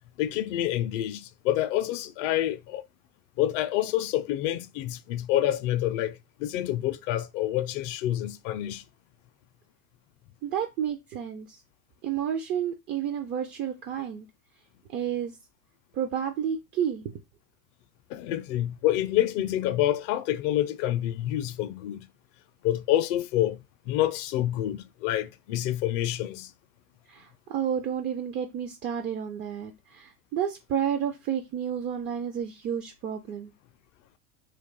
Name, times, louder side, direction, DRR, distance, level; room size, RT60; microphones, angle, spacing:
voice 1, 0.2-2.8 3.4-8.8 18.1-22.0 22.6-26.5, left 13 dB, 60° left, 0.5 m, -27 dB
voice 2, 10.4-11.6 12.0-14.3 14.9-15.3 15.9-17.1 27.1-33.5, right 9 dB, 30° right, 0.4 m, -31 dB
2.5 x 2.3 x 3.8 m
hypercardioid pair, 90°, 43 cm